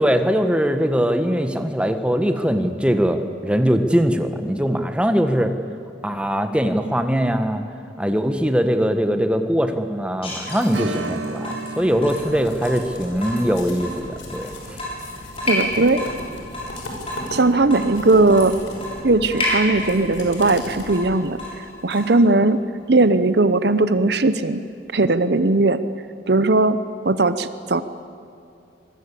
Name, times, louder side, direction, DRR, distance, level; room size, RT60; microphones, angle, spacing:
voice 1, 0.0-5.5 6.0-7.6 8.0-14.8, equal, 5° right, 7 dB, 1.4 m, -21 dB
Water tap faucet / Drip, 10.2-22.2, left 1 dB, 30° left, 6.9 m, -31 dB
Strum, 10.7-19.9 20.2-20.3 22.9-23.1 23.5-23.6, right 2 dB, 85° right, 2.1 m, -37 dB
sound 1, 11.7-21.4, left 1 dB, 90° left, 6.3 m, -38 dB
voice 2, 15.5-16.0 17.3-18.6 19.0-21.4 21.8-22.6 22.9-24.6 24.9-25.8 26.3-26.8 27.0-27.8, right 2 dB, 60° right, 12 dB, 0.9 m, -18 dB
26.0 x 22.0 x 8.5 m, 2.7 s
head